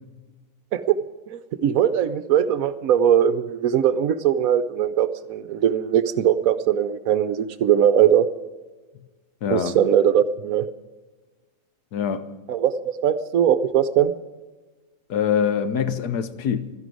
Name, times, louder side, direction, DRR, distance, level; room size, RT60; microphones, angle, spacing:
voice 1, 1.3-8.3 9.5-10.7 12.5-14.1, right 9 dB, 65° right, 1.0 m, -20 dB
voice 2, 9.4-9.8 11.9-12.3 15.1-16.7, left 8 dB, 75° left, 1.4 m, -24 dB
12.5 x 11.5 x 9.2 m
omnidirectional pair, 1.7 m